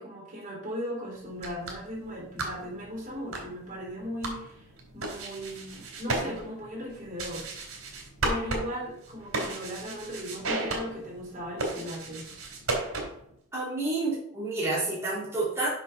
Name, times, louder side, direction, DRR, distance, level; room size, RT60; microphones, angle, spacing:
voice 1, 0.0-4.7 4.9-7.5 8.2-12.3, equal, 35° right, -3 dB, 3.3 m, -37 dB
sound 1, 1.3-13.3, right 2 dB, 90° right, 3.0 m, -35 dB
voice 2, 13.5-15.7, right 2 dB, 15° right, -8 dB, 2.7 m, -29 dB
7.1 x 6.1 x 5.7 m, 0.70 s
head